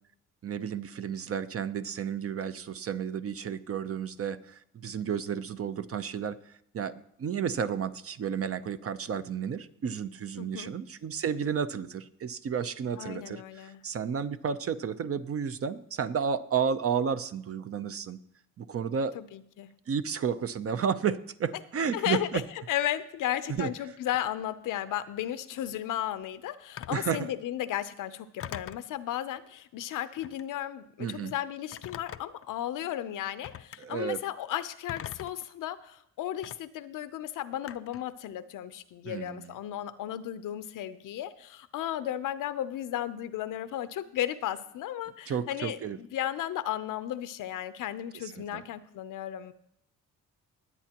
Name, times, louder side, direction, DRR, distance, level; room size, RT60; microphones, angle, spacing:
voice 1, 0.4-6.4 6.7-18.2 18.6-19.2 19.9-22.4 23.5-23.7 26.9-27.3 31.0-31.3 33.8-34.2 39.0-39.5 45.3-46.0 48.2-48.6, right 7 dB, 45° right, 12 dB, 0.7 m, -32 dB
voice 2, 10.4-10.8 13.0-13.8 19.1-19.7 21.9-22.4 22.7-49.5, left 12 dB, 85° left, 13 dB, 0.7 m, -34 dB
Telephone, 26.8-27.1 28.4-28.9 30.2-30.5 31.7-32.5 33.4-33.8 34.9-35.4 36.4-36.6 37.7-38.1, left 10 dB, 50° left, 0.4 m, -42 dB
21.0 x 8.4 x 2.9 m, 0.75 s
cardioid pair, 105°, 31 cm